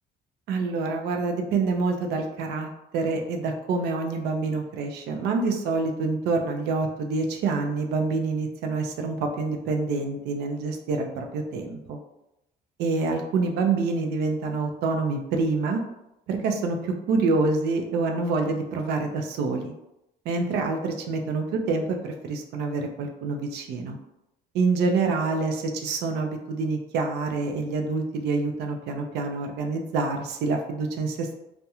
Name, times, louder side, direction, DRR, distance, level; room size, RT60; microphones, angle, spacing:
voice 1, 0.5-12.0 12.8-15.8 16.3-19.7 20.3-24.0 24.5-31.4, right 3 dB, 80° right, 4 dB, 0.5 m, -27 dB
2.3 x 2.1 x 2.8 m, 0.88 s
cardioid pair, 110°, 17 cm